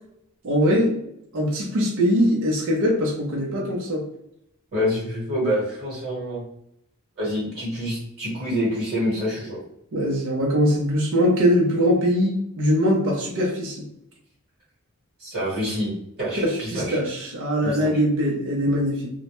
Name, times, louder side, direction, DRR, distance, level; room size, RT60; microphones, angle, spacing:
voice 1, 0.4-0.9 1.3-4.0 9.9-13.8 16.3-19.1, equal, 60° right, -2 dB, 0.5 m, -22 dB
voice 2, 4.7-6.4 7.2-9.6 15.2-15.9 16.2-17.0 17.6-18.0, equal, 45° right, -8 dB, 1.0 m, -27 dB
2.1 x 2.0 x 2.9 m, 0.75 s
head